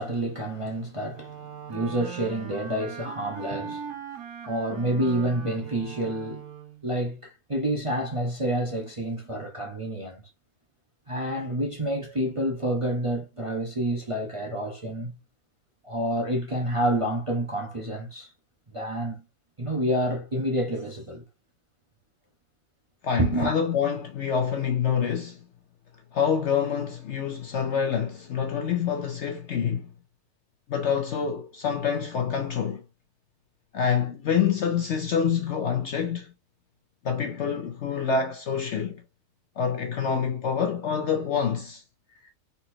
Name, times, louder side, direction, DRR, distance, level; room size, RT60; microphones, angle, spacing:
voice 1, 0.0-1.3 1.7-3.9 4.5-6.5 6.8-10.2 11.1-15.1 15.8-18.3 18.7-19.2 19.6-21.2 23.2-23.6, right 1 dB, 30° right, 0.7 m, -28 dB
Wind instrument woodwind instrument, 1.1-6.9, right 7 dB, 90° right, 1.5 m, -40 dB
voice 2, 23.0-25.4 26.1-29.9 30.7-32.8 33.7-36.3 37.0-39.0 39.6-41.8, left 7 dB, 65° left, 0.7 m, -26 dB
4.2 x 4.1 x 2.7 m
omnidirectional pair, 1.6 m